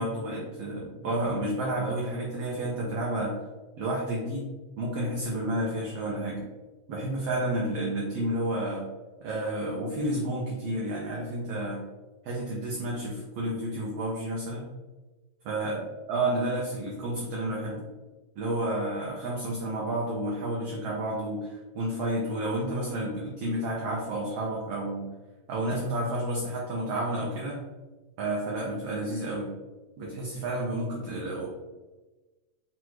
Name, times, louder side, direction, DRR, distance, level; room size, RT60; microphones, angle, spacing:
voice 1, 0.0-3.4 3.8-4.5 4.8-6.4 6.9-8.8 9.2-11.8 12.2-14.7 15.4-15.8 16.1-17.9 18.4-25.1 25.5-27.6 28.2-29.5 30.0-31.5, right 1 dB, 80° right, -3 dB, 1.4 m, -30 dB
5.9 x 2.4 x 3.0 m, 1.2 s
omnidirectional pair, 3.6 m